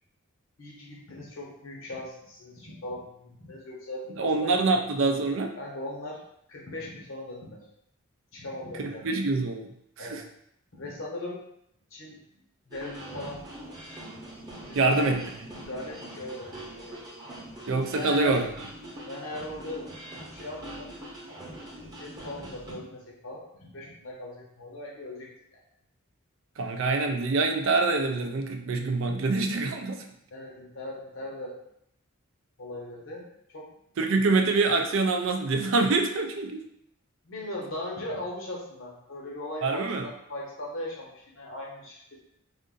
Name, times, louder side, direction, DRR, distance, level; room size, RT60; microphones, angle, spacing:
voice 1, 0.6-4.8 5.6-6.2 6.5-7.6 8.3-9.1 10.0-10.2 10.7-11.4 11.9-12.2 12.7-13.4 14.6-15.1 15.5-17.0 17.9-18.4 19.1-19.9 20.3-20.9 21.8-25.6 30.3-31.5 32.6-33.7 37.2-42.2, left 1 dB, 65° left, -2 dB, 0.9 m, -39 dB
voice 2, 4.2-5.5 8.8-9.7 10.0-10.2 14.8-15.2 17.7-18.5 26.6-30.0 34.0-36.6 39.6-40.0, right 3 dB, 65° right, 5 dB, 0.4 m, -25 dB
sound 1, 12.7-22.7, right 1 dB, 20° right, 0.8 m, -43 dB
2.5 x 2.5 x 3.7 m, 0.74 s
head